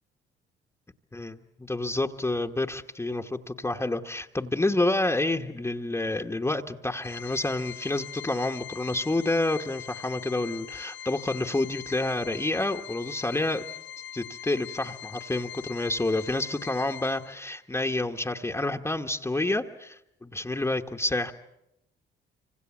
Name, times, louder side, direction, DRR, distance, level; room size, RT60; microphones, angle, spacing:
voice 1, 1.1-13.6 14.1-21.3, left 2 dB, 15° left, 4 dB, 1.2 m, -29 dB
Organ, 7.0-17.6, left 10 dB, 65° left, 0.9 m, -42 dB
26.0 x 25.5 x 7.2 m, 0.81 s
cardioid pair, 90°, 20 cm